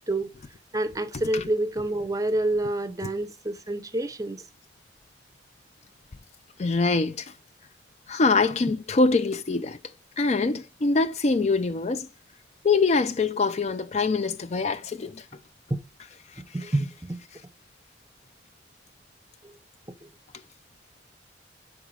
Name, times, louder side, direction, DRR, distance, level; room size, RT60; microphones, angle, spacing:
voice 1, 0.7-4.4 15.7-15.8 16.4-17.2, right 1 dB, 20° right, 0.6 m, -28 dB
voice 2, 6.6-7.3 8.1-9.8 10.2-12.1 12.6-15.2, left 3 dB, 35° left, 0.4 m, -24 dB
5.9 x 5.1 x 4.6 m
head